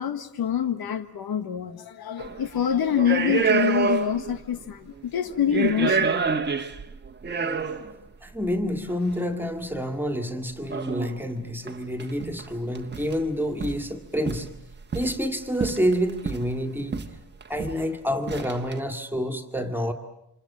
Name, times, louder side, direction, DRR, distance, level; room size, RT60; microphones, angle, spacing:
voice 1, 0.0-6.2, left 9 dB, 70° left, 9 dB, 1.5 m, -26 dB
sound 1, 2.2-2.4 3.0-4.4 4.6-4.7 5.3-8.0 8.9-9.0 10.7-11.2 11.7-11.8 12.0-12.5 12.7-13.2 13.6-13.8 14.3-15.2 15.6-16.5 16.9-17.1 17.4-17.8 18.3-18.7, right 5 dB, 25° right, 1.3 m, -27 dB
voice 2, 8.2-14.5 14.9-17.0 17.5-19.9, equal, 5° right, 6 dB, 2.1 m, -28 dB
28.5 x 26.5 x 7.4 m, 0.83 s
wide cardioid pair, 160°, 38 cm